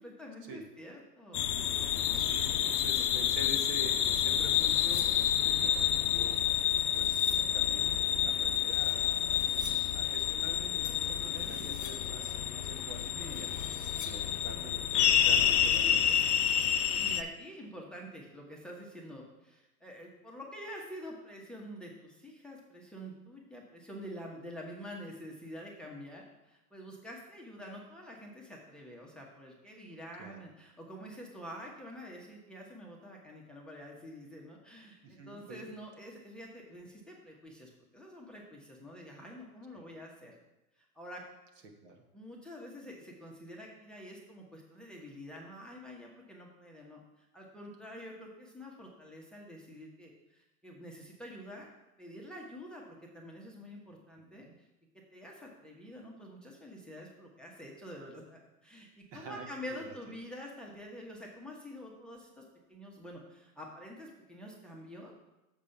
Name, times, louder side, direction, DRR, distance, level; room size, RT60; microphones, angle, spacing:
voice 1, 0.0-1.8 2.0-3.1 16.9-40.3 40.8-41.2 42.1-51.7 52.0-54.7 55.1-62.4 62.7-65.1, equal, ahead, -2 dB, 1.1 m, -47 dB
sound 1, 1.3-17.2, left 9 dB, 75° left, 0.7 m, -29 dB
voice 2, 2.1-6.4 6.9-9.4 9.9-16.3 30.2-30.4 35.0-35.7 39.7-39.8 41.8-42.0 54.2-54.5 59.1-59.9, right 2 dB, 55° right, 3 dB, 1.3 m, -47 dB
sound 2, 3.9-5.3 6.2-7.6 8.6-10.0 10.8-12.2 13.0-14.4, left 8 dB, 45° left, 1.1 m, -50 dB
7.0 x 4.9 x 5.6 m, 0.97 s
hypercardioid pair, 105°, 46 cm